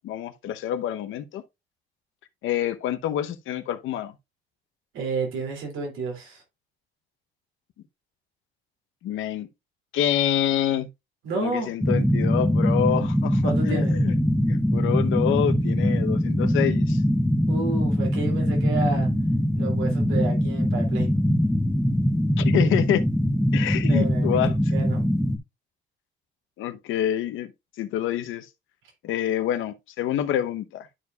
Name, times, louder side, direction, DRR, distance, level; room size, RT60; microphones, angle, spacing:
voice 1, 0.0-1.4 2.4-4.1 9.0-9.5 9.9-10.9 11.4-14.2 14.5-17.0 22.4-23.0 23.5-24.7 26.6-27.5 27.8-28.5 29.0-30.9, left 10 dB, 85° left, 0.8 m, -27 dB
voice 2, 4.9-6.4 11.2-11.7 13.4-13.9 17.5-19.1 19.6-21.1 23.9-24.4 24.7-25.0, right 4 dB, 90° right, 2.7 m, -30 dB
sound 1, 11.8-25.4, equal, ahead, 0.9 m, -22 dB
11.5 x 4.8 x 2.3 m
cardioid pair, 90°, 20 cm